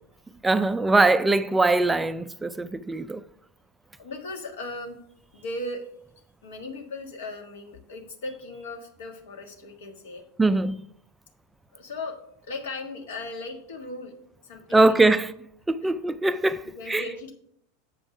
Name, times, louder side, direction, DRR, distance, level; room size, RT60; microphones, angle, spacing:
voice 1, 0.4-3.2 10.4-10.8 14.7-15.3 15.7-17.0, right 2 dB, 10° right, 0.3 m, -22 dB
voice 2, 4.0-5.0 5.3-5.9 6.4-10.2 11.7-12.2 12.4-14.1 14.4-15.0 16.8-17.3, left 2 dB, 65° left, 1.5 m, -37 dB
7.5 x 5.2 x 5.8 m
figure-of-eight pair, 85°, 0 cm